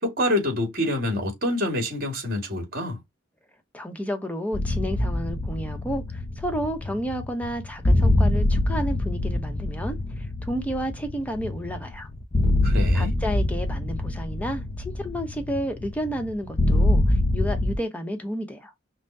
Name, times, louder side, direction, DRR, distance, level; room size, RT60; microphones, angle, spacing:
voice 1, 0.0-3.0 12.6-13.1, left 1 dB, 50° right, 2.2 m, -26 dB
voice 2, 3.7-12.1 12.9-18.7, equal, 10° left, 0.9 m, -31 dB
sound 1, 4.5-17.8, left 1 dB, 30° left, 0.5 m, -25 dB
5.5 x 2.2 x 2.7 m
head